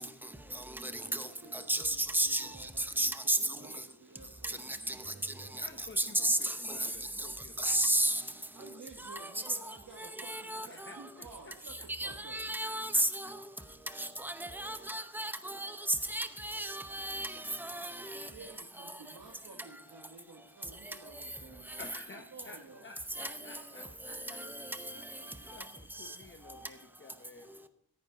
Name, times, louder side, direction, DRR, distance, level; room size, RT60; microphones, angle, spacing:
voice 1, 1.0-5.6 6.0-6.2 7.6-7.7 8.5-12.4 18.1-21.8 22.1-22.9, right 3 dB, 50° right, 1.6 m, -53 dB
voice 2, 1.7-2.5 3.0-3.4 6.0-6.4 7.6-8.2 10.3-10.6 12.0-13.3 14.2-15.7 16.1-17.3 17.7-17.9 23.2-23.3, right 1 dB, 5° right, 0.7 m, -31 dB
voice 3, 5.6-7.9 10.6-11.5 12.9-13.3 13.6-14.0 18.2-18.3 21.8-24.7 25.4-27.7, left 3 dB, 30° left, 0.8 m, -53 dB
14.0 x 10.5 x 3.9 m
wide cardioid pair, 155°, 41 cm